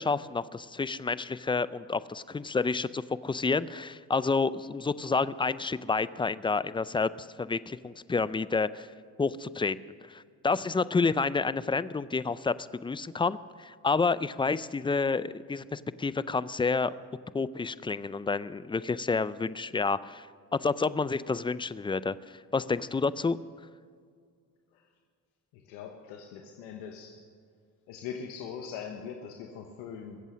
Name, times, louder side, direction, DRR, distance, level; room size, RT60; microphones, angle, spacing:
voice 1, 0.0-8.9 9.2-9.8 10.1-16.9 17.3-20.3 20.5-22.2 22.5-23.4, left 4 dB, 15° left, 17 dB, 0.4 m, -29 dB
voice 2, 25.5-27.2 27.9-30.2, left 7 dB, 90° left, 3 dB, 1.2 m, -41 dB
22.0 x 8.2 x 6.3 m, 2.1 s
supercardioid pair, 70°, 39 cm